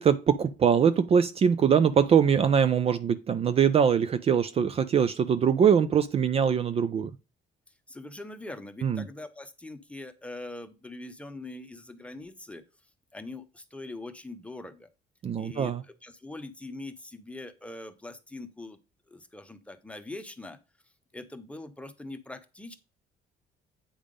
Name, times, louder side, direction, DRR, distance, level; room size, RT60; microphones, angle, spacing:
voice 1, 0.0-7.1 8.8-9.1 15.2-15.8, right 7 dB, 35° right, 0.5 m, -23 dB
voice 2, 7.9-12.6 13.1-14.9 15.4-18.8 19.1-20.6 21.1-22.8, left 2 dB, 5° left, 0.9 m, -42 dB
8.7 x 3.5 x 5.2 m
cardioid pair, 110°, 17 cm